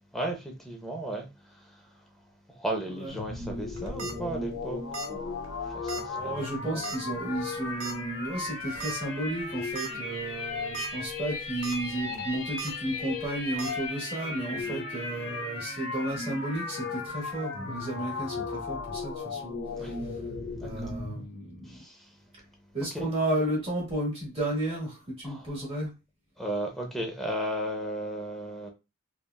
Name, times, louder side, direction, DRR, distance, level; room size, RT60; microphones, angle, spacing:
voice 1, 0.1-1.3 2.5-4.8 5.1-6.9 9.9-10.2 14.5-14.8 19.8-19.9 20.6-20.9 21.7-22.1 22.9-23.1 25.2-25.5 26.4-28.7, right 1 dB, ahead, 0.5 m, -35 dB
sound 1, 3.1-21.2, left 3 dB, 90° left, 1.0 m, -36 dB
sound 2, 3.7-4.1 4.9-5.2 5.4-5.5 5.9-6.0 6.8-7.1 7.8-7.9 8.8-8.9 9.4-9.5 9.8-9.9 10.6-10.9 11.3-11.8 12.6-12.7 13.6-13.7, right 5 dB, 60° right, 0.7 m, -37 dB
voice 2, 6.1-19.5 19.8-19.9 20.6-21.8 22.7-25.9, right 1 dB, 30° right, 1.1 m, -33 dB
3.2 x 2.2 x 2.3 m
head